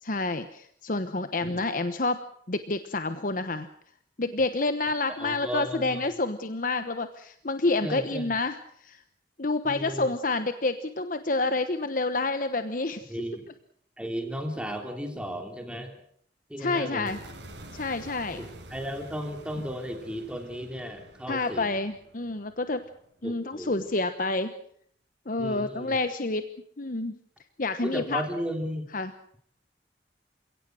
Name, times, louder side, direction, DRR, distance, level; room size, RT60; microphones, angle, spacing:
voice 1, 0.0-2.2 2.5-3.7 4.2-9.0 9.4-13.2 16.6-17.2 17.7-18.4 21.3-22.8 23.2-24.5 25.3-26.5 26.8-27.2 27.6-28.2 28.9-29.1, left 3 dB, 50° left, 10 dB, 1.1 m, -28 dB
voice 2, 5.1-6.1 7.8-8.3 9.6-10.1 13.1-13.5 14.0-15.9 16.5-17.1 18.4-21.8 23.2-23.9 25.4-26.0 27.8-28.9, equal, 5° right, 4 dB, 3.1 m, -35 dB
sound 1, 17.1-23.3, right 1 dB, 90° right, 6.5 m, -48 dB
28.5 x 17.5 x 6.5 m, 0.65 s
head